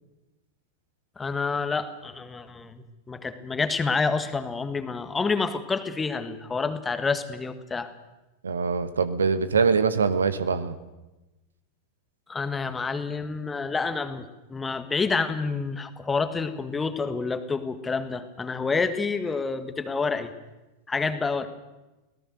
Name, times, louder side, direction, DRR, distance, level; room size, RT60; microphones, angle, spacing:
voice 1, 1.2-7.9 12.3-20.3 20.9-21.5, left 4 dB, 15° left, 10 dB, 1.6 m, -28 dB
voice 2, 8.4-10.8, right 5 dB, 70° right, 14 dB, 1.2 m, -23 dB
24.0 x 18.0 x 6.6 m, 1.1 s
figure-of-eight pair, 90°, 0 cm